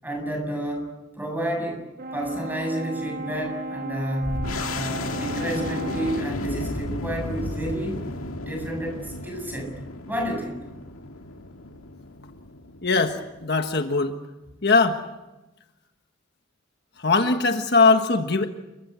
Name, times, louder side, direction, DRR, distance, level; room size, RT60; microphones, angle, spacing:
voice 1, 0.0-0.9 1.1-1.8 2.1-4.4 4.7-8.0 8.5-9.7 10.1-10.6, right 1 dB, 10° right, 3 dB, 7.4 m, -30 dB
Brass instrument, 2.0-6.4, right 2 dB, 45° right, 1.1 m, -35 dB
sound 1, 4.2-13.4, left 2 dB, 80° left, 2.1 m, -33 dB
voice 2, 12.8-14.1 14.6-15.0 17.0-18.5, left 4 dB, 50° left, 6 dB, 1.5 m, -20 dB
29.0 x 23.5 x 8.2 m, 1.1 s
head